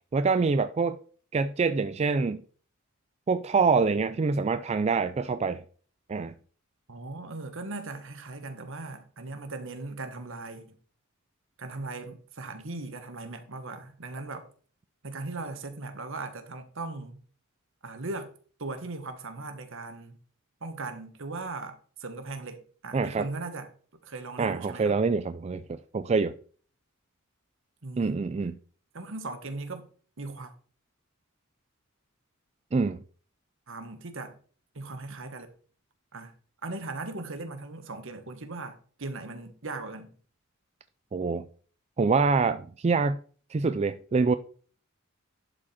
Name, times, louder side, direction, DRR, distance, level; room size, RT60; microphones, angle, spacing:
voice 1, 0.1-1.0 1.3-2.4 3.3-5.6 6.1-6.3 22.9-23.3 24.4-26.3 28.0-28.6 32.7-33.0 41.1-41.5 42.0-43.2 43.5-44.4, right 4 dB, 30° right, 0.4 m, -25 dB
voice 2, 6.9-10.8 11.6-14.5 15.0-17.2 17.8-18.3 18.6-20.2 20.6-23.7 24.0-25.0 27.8-28.2 28.9-29.9 30.2-30.5 33.7-34.4 34.7-35.5 36.1-36.3 36.6-40.1, right 3 dB, 65° right, 1.4 m, -38 dB
11.5 x 4.9 x 4.3 m
head